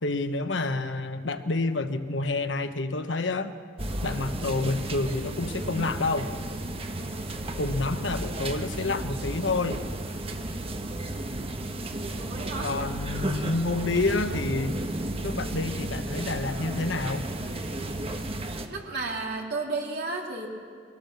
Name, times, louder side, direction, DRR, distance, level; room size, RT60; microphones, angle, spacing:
voice 1, 0.0-3.5 4.0-6.3 7.6-9.8 12.6-14.8 15.2-17.3, left 3 dB, 80° left, 9 dB, 1.1 m, -28 dB
sound 1, 3.8-18.7, right 1 dB, 30° right, 1.3 m, -33 dB
voice 2, 11.9-12.7 18.7-20.5, right 3 dB, 60° right, 0 dB, 3.1 m, -33 dB
22.5 x 17.5 x 7.0 m, 2.1 s
head